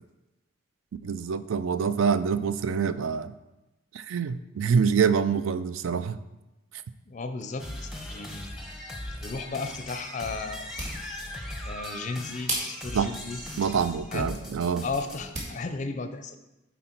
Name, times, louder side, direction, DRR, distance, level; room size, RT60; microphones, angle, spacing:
voice 1, 1.0-3.3 3.9-6.2 12.9-13.1 13.6-14.8, right 6 dB, 80° right, 13 dB, 0.4 m, -26 dB
voice 2, 7.1-8.6 9.2-10.7 11.6-13.4 14.1-14.3 14.8-16.4, left 4 dB, 35° left, 8 dB, 0.4 m, -35 dB
sound 1, 7.6-15.3, left 1 dB, ahead, 0.7 m, -39 dB
sound 2, 10.5-15.6, right 1 dB, 35° right, 1.7 m, -39 dB
8.1 x 4.2 x 4.4 m, 0.99 s
head